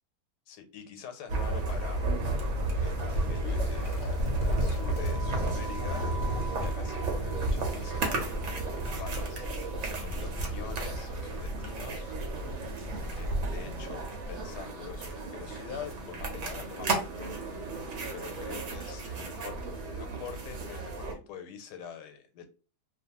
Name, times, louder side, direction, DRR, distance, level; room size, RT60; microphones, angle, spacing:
voice 1, 0.5-2.0 2.8-4.0 4.5-6.1 6.6-8.5 8.7-12.1 12.5-12.6 13.1-17.3 17.8-17.9 18.1-19.6 19.9-22.5, left 7 dB, 90° left, 7 dB, 1.2 m, -45 dB
sound 1, 1.3-21.1, right 2 dB, 60° right, 0.9 m, -32 dB
sound 2, 2.0-14.7, left 2 dB, 35° left, 0.8 m, -53 dB
sound 3, 2.3-14.6, right 2 dB, 80° right, 1.2 m, -42 dB
2.6 x 2.2 x 2.8 m, 0.35 s
omnidirectional pair, 1.7 m